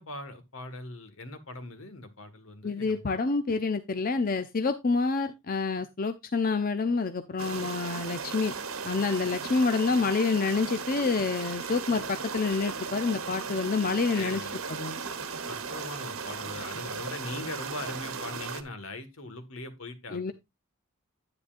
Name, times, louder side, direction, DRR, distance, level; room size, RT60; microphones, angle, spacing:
voice 1, 0.0-3.0 14.1-14.7 15.5-20.3, left 2 dB, 75° left, 1.7 m, -40 dB
voice 2, 2.6-8.5 8.8-14.4 14.7-15.0 20.1-20.3, left 4 dB, 45° left, 0.6 m, -28 dB
sound 1, 7.4-18.6, right 5 dB, 85° right, 1.2 m, -36 dB
9.9 x 9.5 x 2.5 m
head